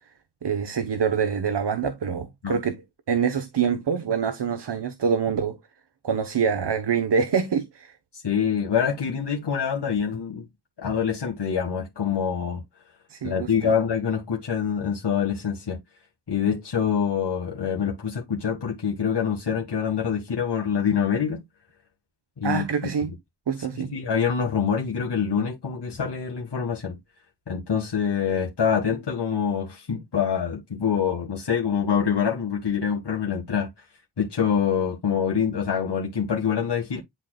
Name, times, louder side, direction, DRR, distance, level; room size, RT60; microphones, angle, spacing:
voice 1, 0.4-2.7 3.1-5.6 6.0-7.9 13.1-13.5 22.4-23.1 23.5-23.9, right 6 dB, 85° right, 1.1 m, -25 dB
voice 2, 8.1-10.5 10.8-12.6 13.2-15.8 16.3-21.4 22.4-22.7 23.7-27.0 27.5-33.7 34.2-37.0, left 7 dB, 80° left, 1.8 m, -25 dB
11.0 x 4.3 x 2.3 m
wide cardioid pair, 85°, 40 cm